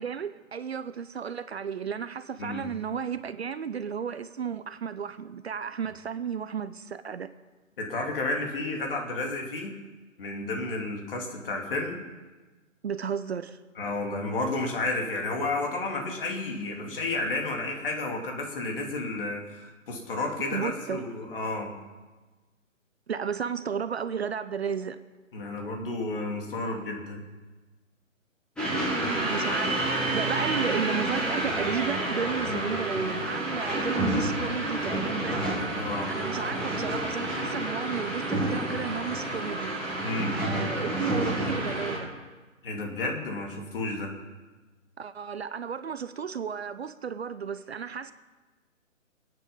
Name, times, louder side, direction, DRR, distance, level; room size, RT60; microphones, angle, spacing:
voice 1, 0.0-7.3 12.8-13.6 20.5-21.0 23.1-25.0 29.3-29.8 30.1-35.4 36.1-39.7 40.4-42.1 45.0-48.1, right 7 dB, 55° right, 0.7 m, -33 dB
voice 2, 7.8-9.8 10.2-12.0 13.8-21.8 25.3-27.2 32.5-32.6 35.7-36.1 40.0-40.4 42.6-44.1, left 2 dB, 45° left, 2.9 m, -31 dB
sound 1, 28.6-42.0, right 1 dB, ahead, 1.9 m, -29 dB
26.0 x 9.1 x 5.4 m
hypercardioid pair, 160°, 40 cm